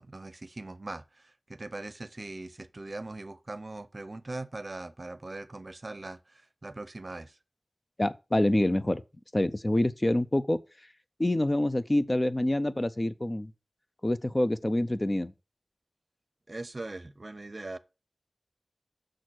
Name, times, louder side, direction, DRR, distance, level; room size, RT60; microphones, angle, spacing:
voice 1, 0.0-7.4 16.5-17.8, right 2 dB, 50° right, 0.6 m, -41 dB
voice 2, 8.0-9.0 9.3-10.6 11.2-13.5 14.0-15.3, left 1 dB, 30° left, 0.6 m, -26 dB
6.4 x 4.2 x 6.3 m
wide cardioid pair, 45°, 0 cm